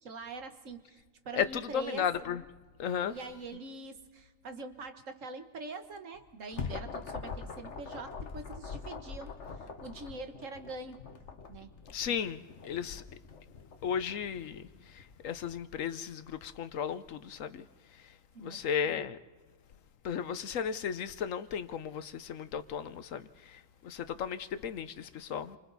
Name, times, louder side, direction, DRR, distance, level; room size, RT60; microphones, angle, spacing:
voice 1, 0.0-2.1 3.1-11.0 11.5-11.7 18.3-18.7, right 3 dB, 75° right, 1.8 m, -44 dB
voice 2, 1.3-2.4 2.8-3.2 11.9-13.0 13.8-17.7 18.0-18.1 18.4-19.2 20.0-25.6, left 8 dB, 80° left, 1.2 m, -35 dB
sound 1, 6.1-15.6, left 5 dB, 60° left, 1.5 m, -44 dB
30.0 x 25.0 x 4.1 m
omnidirectional pair, 1.4 m